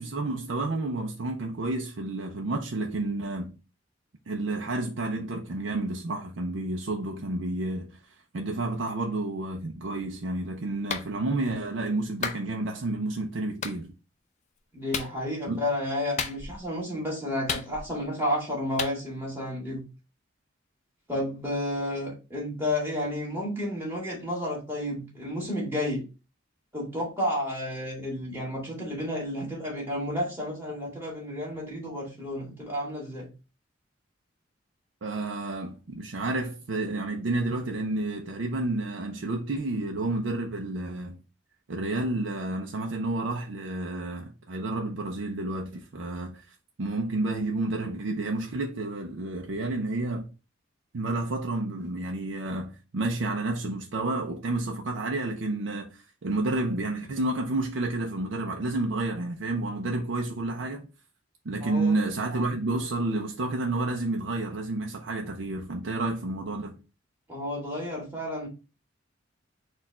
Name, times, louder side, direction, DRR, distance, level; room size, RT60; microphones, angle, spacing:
voice 1, 0.0-3.6 4.3-8.0 8.3-13.9 15.5-15.6 35.0-41.2 41.7-50.3 50.9-60.9 61.4-66.8, right 2 dB, 70° right, 0.5 m, -30 dB
Clapping, 10.9-11.1 12.2-12.4 13.6-13.8 14.9-15.1 16.2-16.6 17.5-18.0 18.8-19.0, left 6 dB, 40° left, 0.5 m, -32 dB
voice 2, 14.7-19.8 21.1-26.0 26.7-33.3 61.6-61.9 67.3-68.5, left 1 dB, 10° right, 1.9 m, -31 dB
4.4 x 2.4 x 4.2 m
head